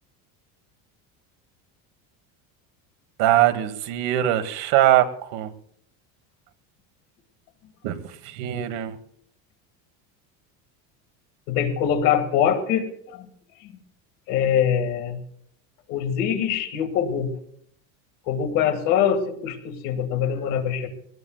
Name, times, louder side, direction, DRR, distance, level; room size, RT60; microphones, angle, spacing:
voice 1, 3.2-5.5 7.8-8.0 8.2-8.9, right 13 dB, 70° right, 9 dB, 1.5 m, -21 dB
voice 2, 11.5-13.3 13.6-13.7 14.3-15.2 15.9-17.4 18.3-20.9, left 8 dB, 60° left, 6 dB, 1.9 m, -23 dB
22.5 x 19.0 x 2.3 m, 0.66 s
cardioid pair, 170°, 37 cm